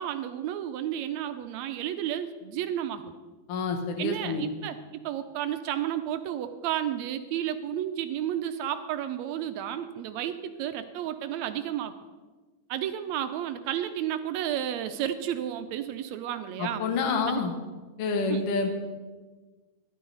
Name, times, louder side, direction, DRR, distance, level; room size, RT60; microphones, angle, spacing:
voice 1, 0.0-3.1 4.0-11.9 12.7-16.8 17.3-17.4 18.3-18.5, right 10 dB, 80° right, 9 dB, 1.7 m, -32 dB
voice 2, 3.5-4.5 16.6-17.5 18.0-18.7, left 4 dB, 60° left, 3 dB, 1.6 m, -28 dB
13.5 x 11.5 x 3.9 m, 1.3 s
omnidirectional pair, 3.6 m